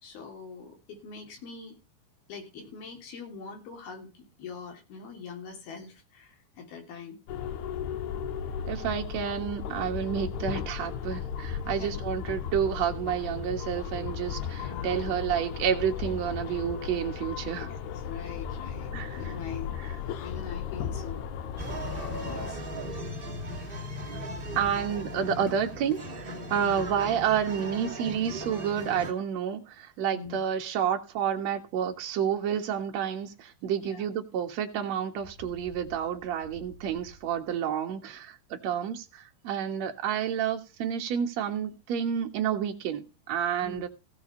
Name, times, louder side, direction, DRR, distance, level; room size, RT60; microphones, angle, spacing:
voice 1, 0.0-1.7 2.3-7.2 11.6-11.9 14.6-15.1 17.6-17.8 18.0-21.2 22.1-22.6 23.5-23.8 26.6-26.8 30.1-30.4 33.8-34.0 43.6-43.8, left 5 dB, 75° left, 5.1 m, -43 dB
sound 1, 7.3-22.5, left 7 dB, 90° left, 3.1 m, -35 dB
voice 2, 8.6-17.7 18.9-19.2 19.8-19.9 24.6-43.9, right 8 dB, 55° right, 2.3 m, -30 dB
sound 2, 21.6-29.1, equal, 20° right, 1.7 m, -37 dB
Bird, 35.2-37.6, left 1 dB, 40° left, 5.3 m, -51 dB
16.0 x 7.2 x 4.5 m
omnidirectional pair, 4.5 m